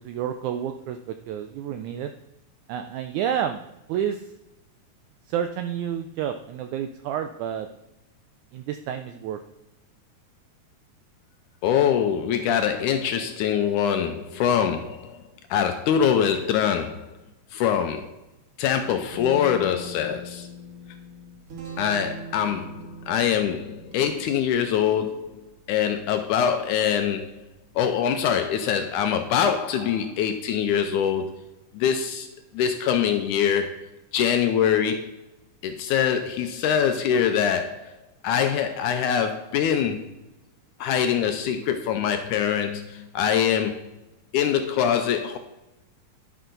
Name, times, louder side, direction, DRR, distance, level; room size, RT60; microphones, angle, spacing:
voice 1, 0.0-2.1 2.7-3.6 3.9-4.3 5.3-7.7 8.5-9.4, right 9 dB, 85° right, 7 dB, 1.7 m, -30 dB
voice 2, 11.6-15.2 15.5-17.1 17.5-18.1 18.6-20.5 21.8-27.3 27.8-31.3 31.7-32.3 32.5-33.8 34.1-35.1 35.6-38.0 38.2-40.1 40.8-43.9 44.3-45.4, left 8 dB, 80° left, 7 dB, 1.9 m, -24 dB
Guitar, 18.7-28.4, equal, 50° right, 2.2 m, -43 dB
11.0 x 5.6 x 3.9 m, 0.93 s
omnidirectional pair, 3.9 m